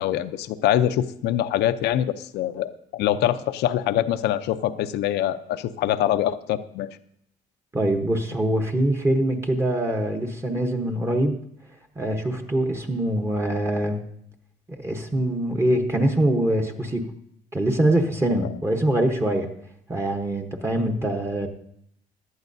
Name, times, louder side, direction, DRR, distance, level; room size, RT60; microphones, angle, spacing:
voice 1, 0.0-6.9, left 11 dB, 80° left, 12 dB, 0.6 m, -24 dB
voice 2, 7.7-11.4 12.0-14.0 14.8-17.1 17.5-19.5 19.9-21.5, right 1 dB, 15° right, 4 dB, 1.0 m, -23 dB
17.0 x 11.5 x 2.7 m, 0.70 s
cardioid pair, 110°, 17 cm